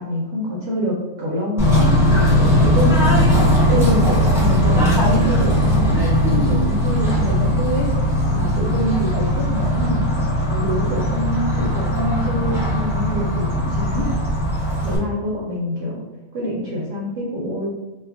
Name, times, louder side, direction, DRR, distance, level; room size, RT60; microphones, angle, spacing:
voice 1, 0.0-3.2 3.7-10.2 10.5-14.2 14.8-16.1 16.3-17.7, left 1 dB, 65° right, -5 dB, 1.0 m, -26 dB
Bird / Train, 1.6-15.0, equal, 5° right, 0.6 m, -18 dB
2.8 x 2.4 x 3.4 m, 1.1 s
omnidirectional pair, 1.6 m